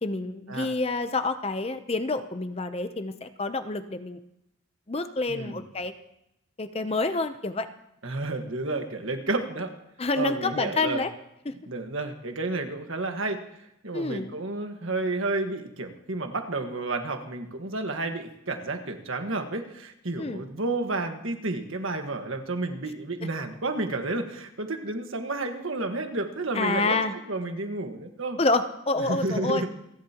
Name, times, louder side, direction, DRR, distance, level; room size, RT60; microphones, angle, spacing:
voice 1, 0.0-4.2 4.9-5.9 6.6-7.7 10.0-11.1 11.5-11.6 13.9-14.3 20.2-20.4 26.5-27.1 28.4-29.6, left 3 dB, 30° left, 10 dB, 0.6 m, -28 dB
voice 2, 5.3-5.6 8.0-9.7 10.1-11.0 11.6-13.4 13.8-28.4 29.0-29.7, right 2 dB, 70° right, 5 dB, 1.5 m, -31 dB
28.0 x 11.5 x 2.9 m, 0.83 s
head